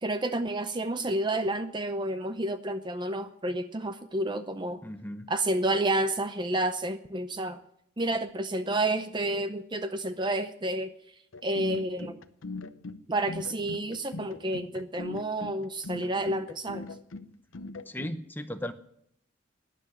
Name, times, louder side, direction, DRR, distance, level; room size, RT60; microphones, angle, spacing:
voice 1, 0.0-4.8 5.3-7.6 8.0-10.9 11.4-12.2 13.1-16.8, right 1 dB, 25° right, 10 dB, 0.6 m, -30 dB
voice 2, 4.8-5.3 17.9-18.7, left 1 dB, 10° left, 9 dB, 0.8 m, -36 dB
sound 1, 11.3-18.2, left 3 dB, 85° left, 0.8 m, -40 dB
12.5 x 10.0 x 9.7 m, 0.72 s
head